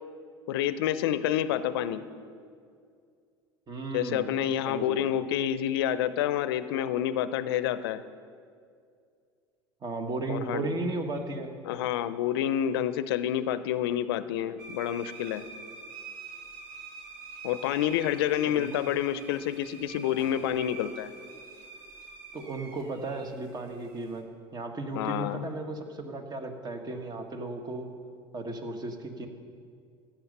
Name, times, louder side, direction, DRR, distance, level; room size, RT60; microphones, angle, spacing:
voice 1, 0.5-2.0 3.9-8.0 10.3-10.7 11.6-15.4 17.4-21.1 25.0-25.4, left 11 dB, 75° left, 14 dB, 0.5 m, -28 dB
voice 2, 3.7-4.4 4.7-5.1 9.8-11.5 18.4-18.7 22.3-24.3 24.5-27.9 28.3-29.3, right 2 dB, 30° right, 6 dB, 1.5 m, -35 dB
sound 1, 14.6-24.2, right 4 dB, 75° right, 1.8 m, -46 dB
14.0 x 9.0 x 5.5 m, 2.3 s
hypercardioid pair, 80°, 13 cm